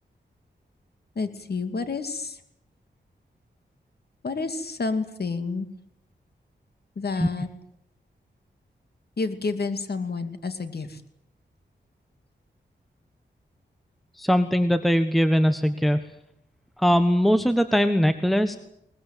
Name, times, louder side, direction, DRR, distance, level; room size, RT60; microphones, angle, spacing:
voice 1, 1.1-2.4 4.2-5.7 7.0-7.5 9.2-11.0, left 4 dB, 60° left, 8 dB, 2.6 m, -29 dB
voice 2, 14.2-16.0 16.8-18.6, equal, ahead, 9 dB, 1.3 m, -21 dB
22.0 x 20.0 x 9.2 m, 0.74 s
wide cardioid pair, 90°, 19 cm